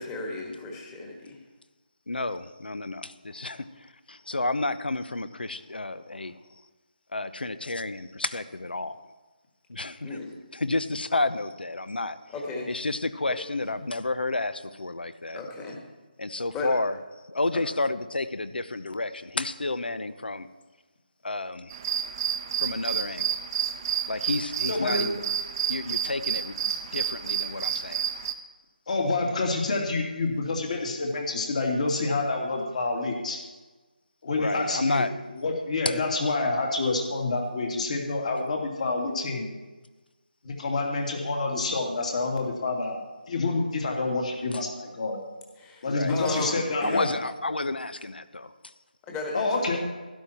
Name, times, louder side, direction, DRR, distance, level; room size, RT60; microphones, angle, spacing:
voice 1, 0.0-1.4 10.0-10.4 12.3-12.7 15.3-15.8 16.5-16.7 17.5-17.6 45.6-47.1 49.0-49.8, left 2 dB, 15° left, 0 dB, 1.5 m, -35 dB
voice 2, 2.1-6.4 7.1-9.0 9.7-10.2 10.5-12.2 12.7-15.4 16.2-17.0 17.3-20.5 21.2-21.8 22.6-23.4 24.1-25.2 25.7-28.1 34.3-35.1 35.8-35.9 44.5-44.6 45.9-46.5 46.8-48.7, left 2 dB, 85° left, 13 dB, 0.9 m, -31 dB
sound 1, 21.7-28.3, right 9 dB, 25° right, 0.6 m, -30 dB
voice 3, 24.7-25.0 28.9-33.4 34.2-35.0 35.4-39.5 40.4-43.0 43.3-45.2 45.8-47.1 49.3-49.8, left 3 dB, 45° left, 1 dB, 2.6 m, -27 dB
12.5 x 11.5 x 4.4 m, 1.2 s
figure-of-eight pair, 160°, 5 cm